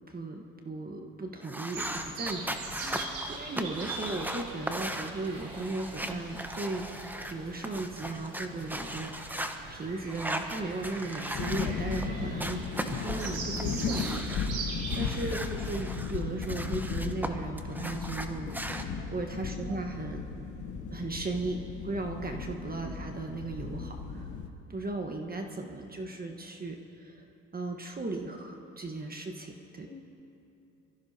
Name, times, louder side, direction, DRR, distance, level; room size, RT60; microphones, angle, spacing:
voice 1, 0.1-2.9 3.3-6.9 7.3-9.4 9.7-14.7 14.9-18.6 19.1-20.2 20.9-24.3 24.7-27.2 27.5-29.9, right 2 dB, 25° right, 3 dB, 1.4 m, -36 dB
sound 1, 1.4-7.3 7.6-9.6 10.1-12.1 12.4-14.5 14.9-17.3 17.6-18.8, right 1 dB, 5° right, 1.0 m, -38 dB
sound 2, 1.7-16.5, right 3 dB, 80° right, 2.9 m, -42 dB
sound 3, 11.3-24.5, left 5 dB, 60° left, 1.2 m, -36 dB
voice 2, 14.7-15.2 18.9-19.4 22.3-22.6 29.9-30.0, left 4 dB, 35° left, 0 dB, 2.3 m, -49 dB
23.5 x 14.5 x 2.9 m, 2.8 s
supercardioid pair, 70°, 34 cm